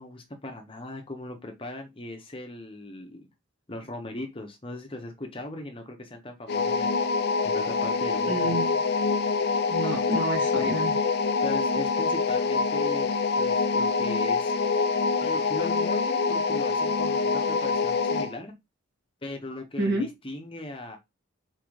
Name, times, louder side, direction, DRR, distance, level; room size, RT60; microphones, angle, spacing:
voice 1, 0.0-3.3 3.7-7.0 7.4-8.5 10.1-10.2 11.4-14.6 15.2-18.5 19.2-21.0, left 1 dB, 25° left, 0.8 m, -39 dB
sound 1, 6.5-18.4, left 4 dB, 50° left, 0.4 m, -25 dB
voice 2, 8.3-8.8 9.7-11.0 19.8-20.1, right 1 dB, 55° right, 2.2 m, -29 dB
4.4 x 3.8 x 3.1 m
head